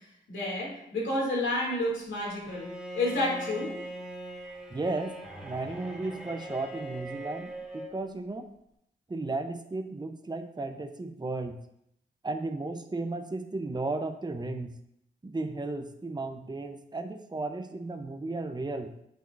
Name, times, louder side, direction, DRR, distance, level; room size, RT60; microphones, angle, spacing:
voice 1, 0.3-2.7 2.9-3.7, left 1 dB, 90° left, -4 dB, 2.7 m, -30 dB
Bowed string instrument, 2.5-8.0, right 1 dB, ahead, 2.9 m, -41 dB
voice 2, 4.7-8.5 9.1-11.6 12.2-14.7 15.2-18.9, right 2 dB, 20° right, 6 dB, 0.8 m, -34 dB
8.6 x 5.7 x 2.7 m, 0.77 s
cardioid pair, 55°, 19 cm